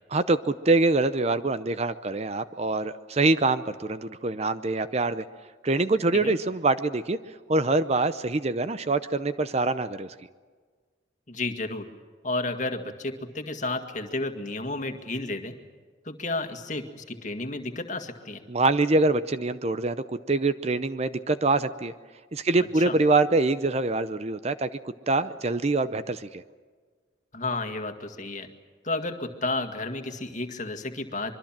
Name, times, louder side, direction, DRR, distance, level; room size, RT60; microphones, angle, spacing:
voice 1, 0.1-5.2 5.6-7.2 7.5-10.1 18.5-21.9 22.3-24.7 25.1-26.4, right 3 dB, 35° right, 13 dB, 0.6 m, -24 dB
voice 2, 11.3-11.9 12.2-15.5 16.0-18.4 22.8-23.0 27.3-28.5 28.8-31.3, left 2 dB, 40° left, 6 dB, 1.9 m, -32 dB
25.5 x 23.0 x 7.4 m, 1.5 s
head